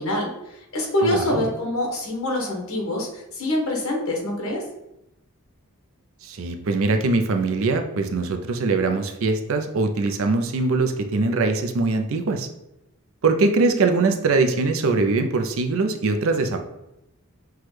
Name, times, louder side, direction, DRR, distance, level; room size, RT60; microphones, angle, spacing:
voice 1, 0.0-4.6, left 1 dB, 65° left, 0 dB, 1.1 m, -25 dB
voice 2, 1.0-1.4 6.2-12.5 13.2-16.6, right 3 dB, 60° right, 6 dB, 0.4 m, -22 dB
6.0 x 2.3 x 3.2 m, 0.86 s
head